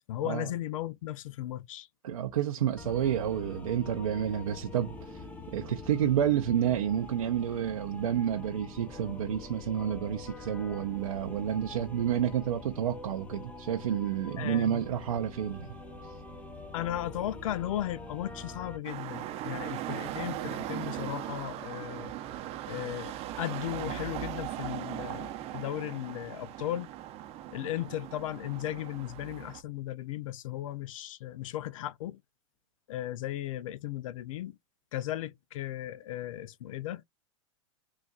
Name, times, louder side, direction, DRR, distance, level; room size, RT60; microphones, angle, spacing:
voice 1, 0.1-1.9 14.4-14.8 16.7-22.1 22.7-26.9 27.5-32.2 32.9-34.6 34.9-37.0, left 13 dB, 70° left, 0.5 m, -36 dB
voice 2, 2.0-15.7 16.0-16.1, right 9 dB, 85° right, 0.6 m, -30 dB
sound 1, 2.8-18.8, left 2 dB, 10° left, 0.8 m, -45 dB
sound 2, 18.8-29.6, right 12 dB, 35° right, 0.6 m, -39 dB
3.9 x 2.4 x 2.4 m
hypercardioid pair, 115°, 18 cm